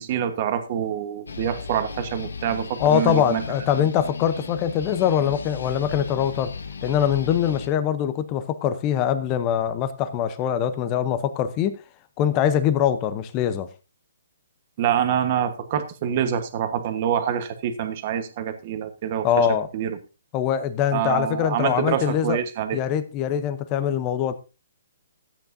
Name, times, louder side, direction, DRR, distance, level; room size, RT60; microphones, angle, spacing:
voice 1, 0.0-3.4 14.8-19.5 19.7-20.0 20.9-22.8, right 9 dB, 35° right, 1.2 m, -26 dB
sound 1, 1.3-7.7, left 5 dB, 85° left, 1.2 m, -36 dB
voice 2, 2.8-6.5 6.8-11.8 12.2-13.7 19.2-19.7 20.3-22.4 22.7-24.3, left 9 dB, 25° left, 0.7 m, -23 dB
13.5 x 8.9 x 2.7 m
hypercardioid pair, 160°, 0 cm